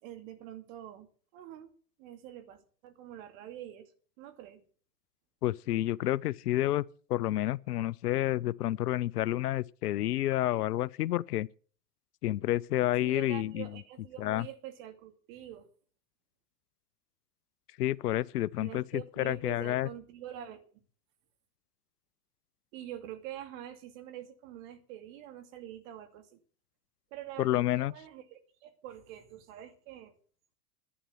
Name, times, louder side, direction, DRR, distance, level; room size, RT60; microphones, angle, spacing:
voice 1, 0.0-1.7 2.0-3.9 4.2-4.6 13.0-15.7 18.6-20.8 22.7-26.4 27.1-30.2, right 11 dB, 55° right, 2.4 m, -46 dB
voice 2, 5.4-6.8 7.1-11.5 12.2-13.7 14.2-14.5 17.8-19.9 27.4-27.9, left 14 dB, 80° left, 0.6 m, -29 dB
11.5 x 9.6 x 7.0 m
hypercardioid pair, 100°, 46 cm